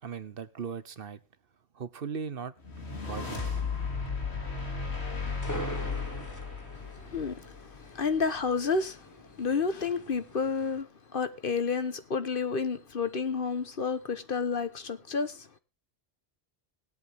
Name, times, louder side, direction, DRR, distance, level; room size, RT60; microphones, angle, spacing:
voice 1, 0.0-1.2 1.7-2.5 3.1-3.6, right 6 dB, 60° right, 1.1 m, -38 dB
sound 1, 2.6-8.0, left 4 dB, 85° left, 2.8 m, -35 dB
sound 2, 5.1-10.8, equal, 15° left, 1.3 m, -45 dB
voice 2, 7.1-7.6 7.9-9.0 9.4-15.5, left 5 dB, 55° left, 1.3 m, -30 dB
19.5 x 8.5 x 3.5 m
omnidirectional pair, 1.1 m